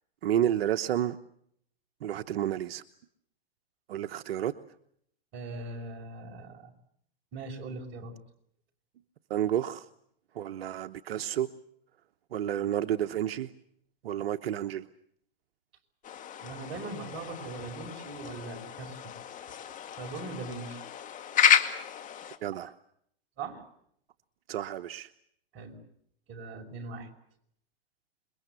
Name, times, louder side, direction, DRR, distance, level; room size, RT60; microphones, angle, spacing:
voice 1, 0.2-1.2 2.0-2.8 3.9-4.5 9.3-9.9 10.3-11.5 12.3-13.5 14.0-14.9 22.4-22.7 24.5-25.1, right 11 dB, 75° right, 10 dB, 1.1 m, -30 dB
voice 2, 5.3-6.7 7.3-8.1 16.4-19.1 20.0-20.8 22.5-22.6 23.4-23.6 25.5-25.8 26.3-27.1, right 3 dB, 40° right, 3 dB, 6.0 m, -40 dB
sound 1, 16.0-22.4, left 8 dB, 25° left, 2.2 m, -31 dB
28.0 x 22.5 x 8.2 m, 0.69 s
hypercardioid pair, 125°, 30 cm